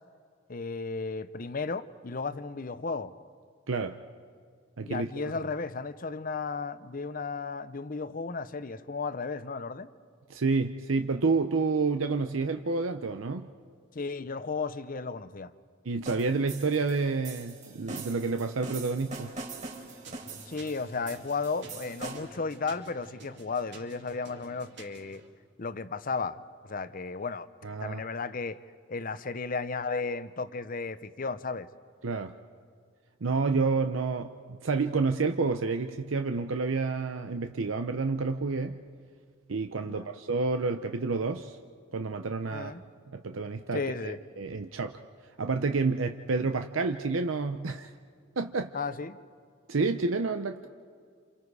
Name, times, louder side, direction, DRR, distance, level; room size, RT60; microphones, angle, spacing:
voice 1, 0.5-3.1 4.8-9.9 13.9-15.5 20.5-25.2 25.6-27.5 27.8-28.6 28.9-31.7 39.9-40.1 42.5-42.8 43.7-44.2 48.7-49.2, left 4 dB, 45° left, 13 dB, 0.7 m, -34 dB
voice 2, 3.7-4.0 4.8-5.1 10.3-13.5 15.9-19.3 27.6-28.0 32.0-32.3 33.2-38.8 39.5-41.6 41.9-42.7 43.1-45.0 45.4-47.9 48.4-48.7 49.7-50.7, right 4 dB, 85° right, 6 dB, 0.7 m, -29 dB
sound 1, 16.1-22.4, right 3 dB, 35° right, 4.1 m, -42 dB
sound 2, 19.6-25.3, right 2 dB, 60° right, 3.2 m, -51 dB
29.0 x 28.0 x 4.8 m, 2.1 s
head